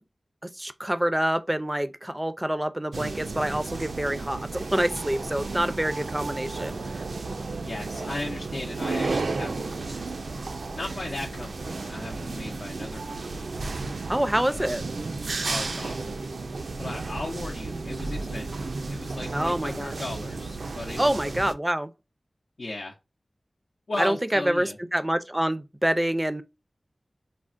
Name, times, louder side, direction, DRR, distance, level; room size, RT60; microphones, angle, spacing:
voice 1, 0.4-7.0 14.1-14.8 19.3-19.9 21.0-21.9 24.0-26.4, right 1 dB, 15° right, 0.4 m, -26 dB
sound 1, 2.9-21.5, right 3 dB, 85° right, 0.3 m, -33 dB
voice 2, 7.6-10.4 10.7-13.4 14.5-14.7 15.4-16.2 16.8-21.3 22.6-22.9 23.9-24.8, left 2 dB, 75° left, 0.6 m, -37 dB
3.4 x 2.1 x 2.4 m
wide cardioid pair, 60°, 0 cm